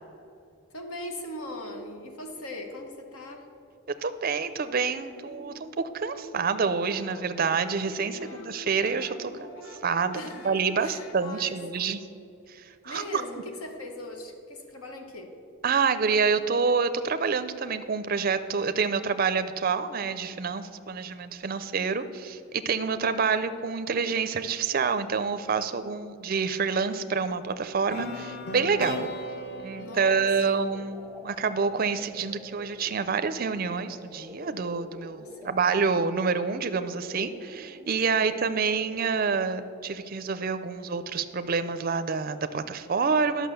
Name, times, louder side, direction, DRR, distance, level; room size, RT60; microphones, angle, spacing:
voice 1, 0.7-3.5 8.1-8.5 10.1-11.9 12.7-15.4 20.9-21.0 28.7-29.0 29.8-30.6 35.2-35.6 38.1-38.4, left 1 dB, 80° left, 4 dB, 1.3 m, -41 dB
voice 2, 4.0-9.5 9.8-12.0 12.5-13.2 15.6-29.1 29.6-43.5, right 5 dB, 40° right, 11 dB, 0.4 m, -27 dB
sound 1, 5.2-11.2, equal, 60° left, 1.2 m, -45 dB
sound 2, 27.9-31.9, left 1 dB, 45° left, 0.9 m, -38 dB
sound 3, 29.4-39.3, equal, ahead, 0.8 m, -47 dB
11.5 x 6.0 x 6.9 m, 2.6 s
head